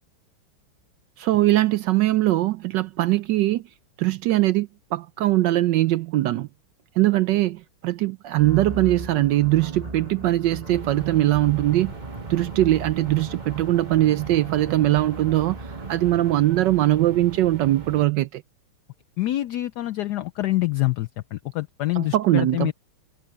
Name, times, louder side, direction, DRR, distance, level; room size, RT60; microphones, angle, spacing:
voice 1, 1.2-3.6 4.0-6.5 7.0-11.9 12.3-18.4 21.9-22.7, right 15 dB, 75° right, 1.0 m, -21 dB
sound 1, 8.4-16.6, right 1 dB, 20° right, 2.3 m, -38 dB
sound 2, 10.7-18.1, right 6 dB, 60° right, 0.4 m, -39 dB
voice 2, 19.2-22.7, left 17 dB, 90° left, 0.9 m, -26 dB
omnidirectional pair, 2.3 m